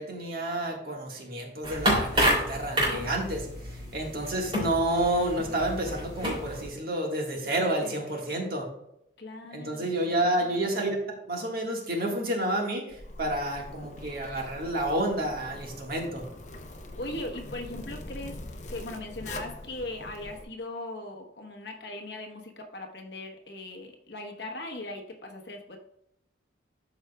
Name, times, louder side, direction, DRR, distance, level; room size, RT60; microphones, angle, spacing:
voice 1, 0.0-8.7 9.5-11.0 11.3-16.2, right 1 dB, 50° right, 0 dB, 1.6 m, -30 dB
sound 1, 1.6-6.7, equal, 30° right, 2.8 m, -29 dB
voice 2, 7.8-8.3 9.2-10.2 17.0-25.8, left 2 dB, 60° left, 3 dB, 1.1 m, -39 dB
Zipper (clothing), 12.9-20.4, left 1 dB, 40° left, 0.7 m, -43 dB
12.5 x 4.8 x 2.3 m, 0.78 s
head